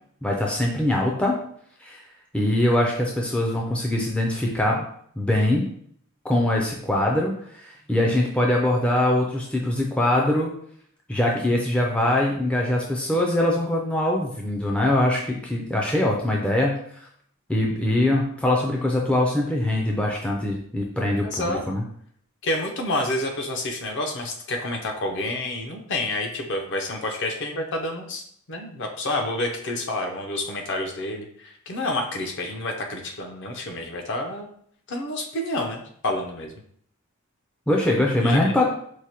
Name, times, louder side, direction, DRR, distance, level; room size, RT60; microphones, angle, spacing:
voice 1, 0.2-1.3 1.8-2.0 2.3-4.8 5.2-5.7 6.2-10.5 11.1-16.8 17.5-21.8 37.7-38.7, left 1 dB, 5° left, -1 dB, 0.3 m, -22 dB
voice 2, 21.2-21.6 22.4-34.5 34.9-36.5 38.2-38.5, left 1 dB, 55° left, 3 dB, 0.6 m, -29 dB
4.6 x 2.1 x 2.8 m, 0.64 s
head